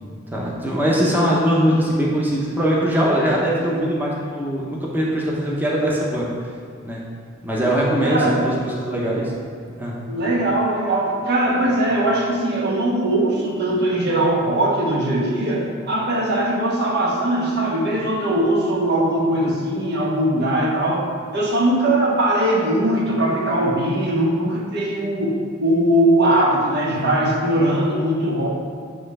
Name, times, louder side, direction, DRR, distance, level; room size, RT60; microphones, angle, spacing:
voice 1, 0.3-6.3 6.8-7.0 7.4-9.3 9.8-9.9 27.0-27.1, equal, 10° right, -5 dB, 0.9 m, -21 dB
voice 2, 8.0-8.5 10.1-28.5, right 1 dB, 55° right, -2 dB, 1.1 m, -20 dB
7.6 x 3.3 x 5.5 m, 2.2 s
head